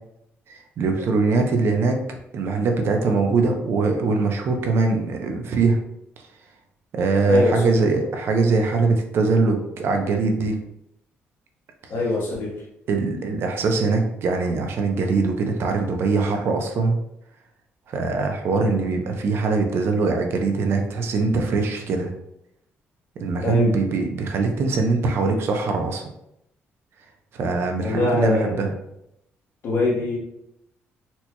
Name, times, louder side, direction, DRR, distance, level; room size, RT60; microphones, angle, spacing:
voice 1, 0.5-2.0 2.3-5.8 6.9-10.6 12.9-17.0 17.9-22.1 23.2-26.1 27.3-28.7, right 3 dB, 65° right, 3 dB, 0.6 m, -22 dB
voice 2, 7.2-7.8 8.8-8.9 11.9-12.6 23.4-23.7 27.8-28.7 29.6-30.2, left 2 dB, 65° left, -3 dB, 1.2 m, -23 dB
4.3 x 2.9 x 2.2 m, 0.79 s
cardioid pair, 100°, 4 cm